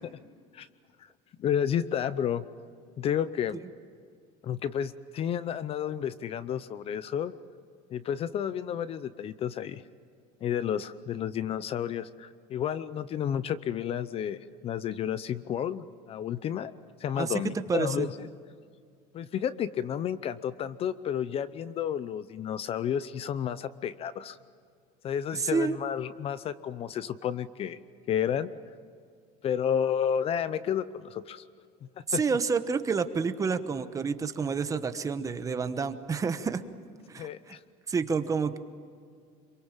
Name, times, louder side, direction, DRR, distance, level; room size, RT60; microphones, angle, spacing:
voice 1, 1.4-2.4 3.0-3.6 4.4-7.3 7.9-9.8 10.4-16.7 17.0-18.3 19.1-24.4 25.0-27.8 28.1-28.5 29.4-31.4 32.1-32.2 37.2-37.6, left 9 dB, 35° left, 15 dB, 0.7 m, -31 dB
voice 2, 17.7-18.1 25.3-25.8 32.1-36.6 37.1-37.5 37.9-38.6, right 5 dB, 20° right, 10 dB, 1.1 m, -29 dB
26.5 x 23.5 x 7.4 m, 2.2 s
cardioid pair, 155°, 16 cm